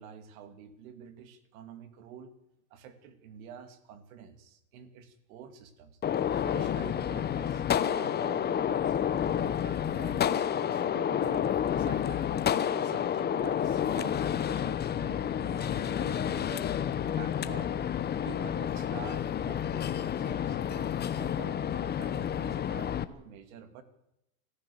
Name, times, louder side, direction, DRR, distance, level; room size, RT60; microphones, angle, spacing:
voice 1, 0.0-2.3 2.7-6.0 6.4-12.4 12.7-16.8 17.1-17.8 18.2-23.8, right 7 dB, 70° right, 9 dB, 2.8 m, -47 dB
Gunshot gunfire, 6.0-23.0, left 9 dB, 20° left, 1.0 m, -30 dB
25.0 x 14.5 x 7.2 m, 0.88 s
supercardioid pair, 125°, 43 cm